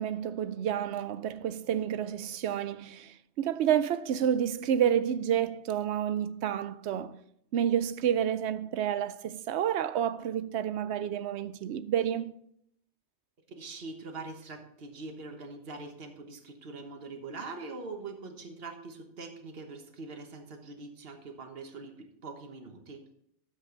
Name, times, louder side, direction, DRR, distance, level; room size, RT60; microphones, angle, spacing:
voice 1, 0.0-7.2 7.5-12.3, right 9 dB, 70° right, 0.8 m, -29 dB
voice 2, 13.5-23.0, right 3 dB, 55° right, 1.5 m, -43 dB
12.5 x 7.6 x 3.8 m
omnidirectional pair, 1.2 m